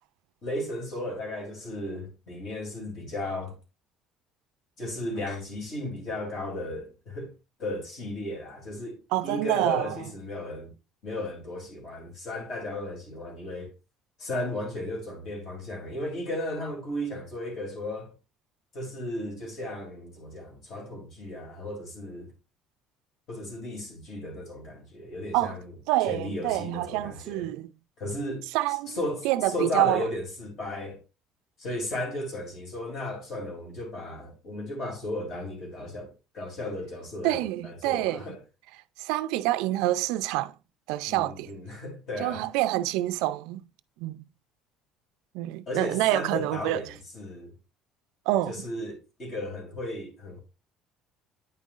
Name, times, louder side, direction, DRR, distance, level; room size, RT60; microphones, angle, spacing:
voice 1, 0.4-3.6 4.8-7.3 7.6-10.7 11.0-13.7 14.2-18.1 18.7-22.3 23.3-25.7 26.0-27.5 28.0-28.4 28.9-31.0 31.6-38.4 41.1-42.5 45.7-47.5 48.4-50.4, left 1 dB, 40° left, 3.0 m, -35 dB
voice 2, 9.1-10.0 25.3-25.6 25.9-27.7 28.5-29.0 29.2-30.1 37.2-38.4 39.0-40.5 40.9-41.5 42.2-43.6 44.0-44.2 45.3-46.8 48.3-48.6, right 15 dB, 85° right, 0.4 m, -27 dB
9.3 x 5.4 x 2.5 m
cardioid pair, 175°, 0 cm